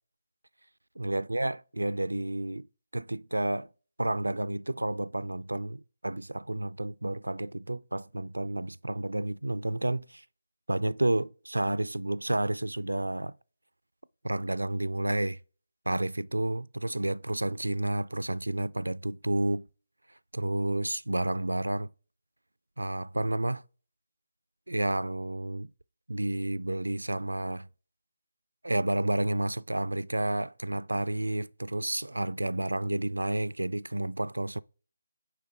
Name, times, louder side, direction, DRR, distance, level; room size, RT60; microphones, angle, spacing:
voice 1, 1.0-2.7 2.9-3.7 4.0-10.2 10.7-13.3 14.2-15.4 15.9-19.7 20.3-21.9 22.8-23.6 24.7-25.7 26.1-27.7 28.6-34.6, right 1 dB, 80° right, 0.3 m, -30 dB
9.3 x 3.5 x 4.4 m
figure-of-eight pair, 150°, 0 cm